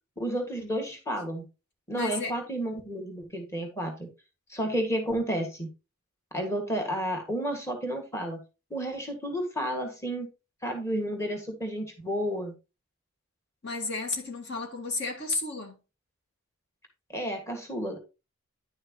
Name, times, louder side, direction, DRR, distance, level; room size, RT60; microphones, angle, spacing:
voice 1, 0.2-1.4 1.9-4.1 4.5-5.7 6.3-8.4 8.7-10.3 10.6-12.5 17.1-18.0, equal, 15° left, 1.9 m, -31 dB
voice 2, 1.9-2.3 13.6-15.8, left 3 dB, 50° left, 1.7 m, -32 dB
10.5 x 6.5 x 3.0 m
head